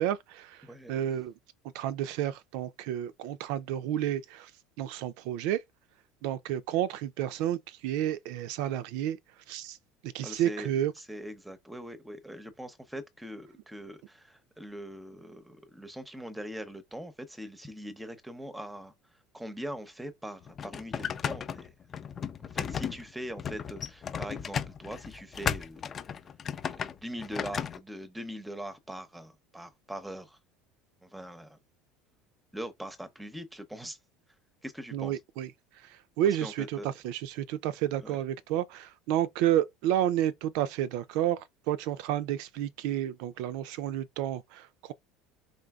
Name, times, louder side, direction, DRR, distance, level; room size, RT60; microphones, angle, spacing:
voice 1, 0.0-1.3 1.7-4.5 4.8-5.6 6.2-9.2 9.5-9.8 10.0-10.9 34.9-35.5 35.8-44.9, right 11 dB, 70° right, 0.4 m, -31 dB
voice 2, 10.2-18.9 19.3-21.7 22.4-25.8 26.7-30.4 31.0-31.6 32.5-34.0 34.6-35.2 36.4-36.9 38.0-38.2, equal, 5° right, 0.7 m, -42 dB
sound 1, 20.4-27.8, left 7 dB, 25° left, 0.4 m, -35 dB
3.9 x 3.8 x 2.3 m
cardioid pair, 145°, 0 cm